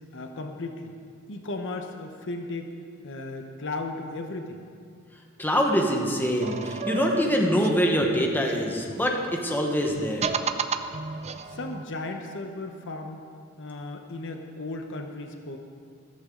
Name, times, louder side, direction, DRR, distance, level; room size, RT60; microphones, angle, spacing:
voice 1, 0.1-0.9 1.3-2.7 3.0-4.6 11.4-13.2 13.6-15.6, left 2 dB, 60° left, 4 dB, 1.0 m, -35 dB
voice 2, 5.4-10.3, equal, 10° left, 0 dB, 1.3 m, -24 dB
sound 1, 6.4-9.2 9.9-11.8, right 5 dB, 30° right, 0.5 m, -33 dB
14.5 x 14.0 x 3.9 m, 2.3 s
head